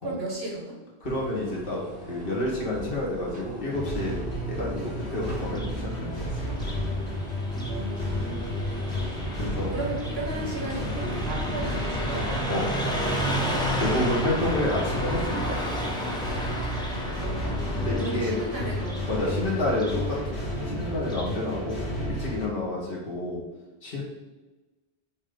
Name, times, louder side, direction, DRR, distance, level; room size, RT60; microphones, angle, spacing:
voice 1, 0.0-0.7 7.7-9.0 9.7-12.2 16.9-19.0 19.2-19.3, right 1 dB, 70° right, -2 dB, 1.5 m, -36 dB
voice 2, 1.0-4.2 4.5-6.3 9.4-9.7 12.5-12.7 13.8-15.6 17.7-18.4 19.1-20.4 20.7-21.8 22.1-23.4 23.8-24.0, left 1 dB, 60° left, -4 dB, 1.8 m, -29 dB
sound 1, 1.0-19.7, equal, 55° right, 1.9 m, -40 dB
sound 2, 3.7-22.5, equal, 85° left, 1.7 m, -32 dB
Car passing by, 5.4-21.4, equal, 5° left, 0.8 m, -34 dB
5.8 x 3.2 x 5.1 m, 1.2 s
omnidirectional pair, 1.1 m